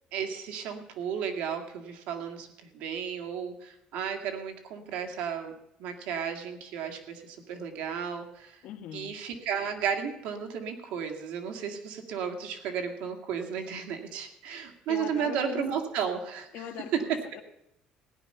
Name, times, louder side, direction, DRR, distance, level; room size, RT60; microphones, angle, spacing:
voice 1, 0.1-5.5 5.8-8.6 8.9-17.2, right 7 dB, 80° right, 4 dB, 2.1 m, -33 dB
voice 2, 8.6-9.1 14.9-15.6 16.5-17.4, left 10 dB, 65° left, 6 dB, 1.3 m, -40 dB
16.5 x 10.0 x 5.6 m, 0.80 s
cardioid pair, 160°, 2 cm